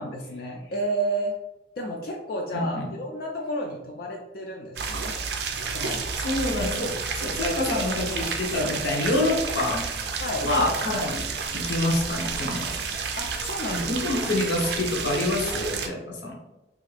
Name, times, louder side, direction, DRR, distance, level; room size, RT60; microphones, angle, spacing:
voice 1, 0.0-1.4 1.8-5.2 5.7-6.1 10.2-10.5 13.2-13.9 14.2-14.3, right 1 dB, 55° left, 0 dB, 0.4 m, -31 dB
voice 2, 2.5-2.9 6.2-9.9 10.4-11.3 11.5-12.7 13.7-16.4, left 2 dB, 85° left, 0 dB, 0.7 m, -27 dB
sound 1, 4.8-15.9, right 5 dB, 65° right, 0.4 m, -30 dB
2.8 x 2.4 x 3.3 m, 0.97 s
head